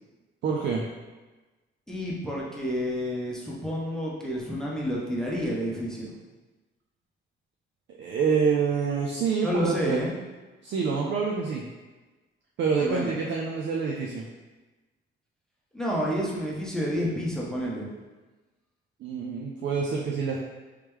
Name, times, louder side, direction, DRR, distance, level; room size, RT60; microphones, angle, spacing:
voice 1, 0.4-0.9 8.0-10.0 10.6-11.6 12.6-14.3 19.0-20.4, right 5 dB, 65° right, -1 dB, 0.5 m, -27 dB
voice 2, 1.9-6.1 9.4-10.1 12.8-13.1 15.7-17.9, equal, 5° left, -4 dB, 0.9 m, -29 dB
3.2 x 3.0 x 3.5 m, 1.2 s
cardioid pair, 90°, 20 cm